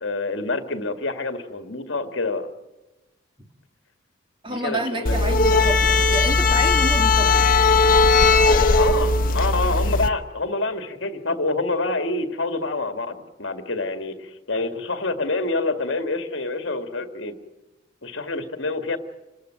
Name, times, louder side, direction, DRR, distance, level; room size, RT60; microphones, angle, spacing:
voice 1, 0.0-2.5 4.5-5.2 8.4-17.4 18.0-19.0, left 3 dB, 65° left, 8 dB, 1.9 m, -27 dB
voice 2, 4.4-7.5, right 1 dB, 25° right, 6 dB, 1.7 m, -29 dB
sound 1, 5.1-10.1, left 3 dB, 45° left, 0.9 m, -18 dB
27.5 x 14.0 x 9.1 m, 1.0 s
head